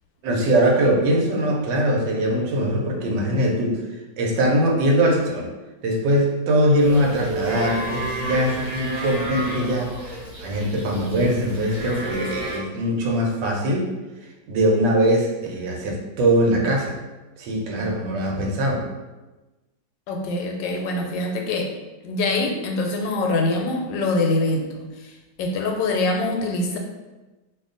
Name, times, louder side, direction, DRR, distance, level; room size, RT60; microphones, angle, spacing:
voice 1, 0.2-3.8 4.2-5.5 5.8-9.9 10.4-13.9 14.5-17.0 17.4-18.8, right 1 dB, 80° right, 0 dB, 1.3 m, -21 dB
sound 1, 6.8-12.6, right 1 dB, 50° right, 1.1 m, -31 dB
voice 2, 20.1-21.7 22.0-24.7 25.0-25.1 25.4-26.8, left 2 dB, 85° left, 2 dB, 1.3 m, -24 dB
2.8 x 2.6 x 3.7 m, 1.1 s
omnidirectional pair, 2.0 m